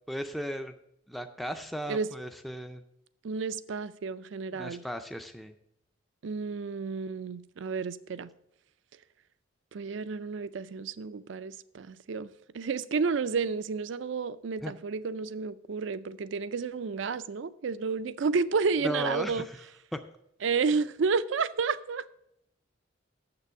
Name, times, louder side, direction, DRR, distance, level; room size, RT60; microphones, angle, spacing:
voice 1, 0.1-0.7 1.1-2.8 4.5-5.5 14.6-14.7 18.8-19.6 19.9-20.0, equal, ahead, 0.4 m, -36 dB
voice 2, 3.2-4.8 6.2-8.3 9.7-12.3 12.5-19.5 20.4-22.1, right 5 dB, 70° right, 0.4 m, -31 dB
6.9 x 6.8 x 7.0 m
head